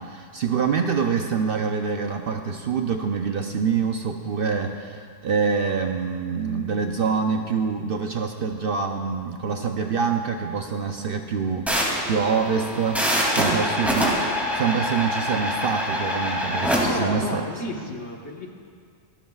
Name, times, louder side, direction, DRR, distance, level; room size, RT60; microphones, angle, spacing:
voice 1, 0.0-11.7 12.1-13.0 13.3-17.5, right 5 dB, 55° right, 4 dB, 0.7 m, -25 dB
sound 1, 11.7-16.8, equal, ahead, 2.6 m, -25 dB
voice 2, 13.2-13.8 16.7-18.5, left 1 dB, 60° left, 0 dB, 1.6 m, -33 dB
24.5 x 13.0 x 2.4 m, 2.1 s
omnidirectional pair, 1.3 m